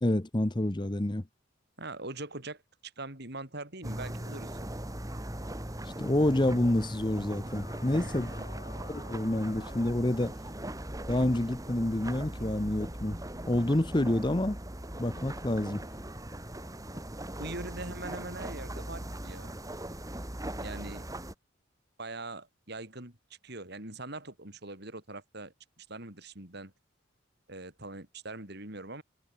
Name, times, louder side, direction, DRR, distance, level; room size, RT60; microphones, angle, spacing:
voice 1, 0.0-1.2 6.0-8.3 8.9-10.3 11.1-13.2 13.5-14.6 15.0-15.9, left 1 dB, 25° left, 0.9 m, -28 dB
voice 2, 1.8-4.7 7.9-8.3 17.3-19.5 20.6-21.1 22.0-26.7 27.5-29.0, right 2 dB, 55° right, 4.5 m, -42 dB
sound 1, 3.8-21.3, right 1 dB, 15° right, 3.0 m, -40 dB
sound 2, 7.4-10.0 11.2-11.8 12.4-12.6, left 4 dB, 50° left, 2.3 m, -52 dB
head